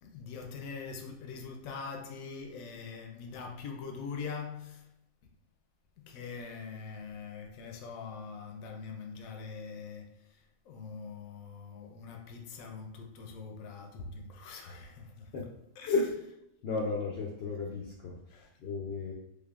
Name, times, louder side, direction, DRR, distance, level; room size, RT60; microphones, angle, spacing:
voice 1, 0.0-4.9 6.0-15.3 15.8-15.9 18.3-18.7, left 5 dB, 80° left, 1.0 m, -43 dB
voice 2, 16.6-18.2 18.6-19.1, left 3 dB, 65° left, 0.6 m, -33 dB
3.5 x 3.4 x 2.3 m
omnidirectional pair, 1.5 m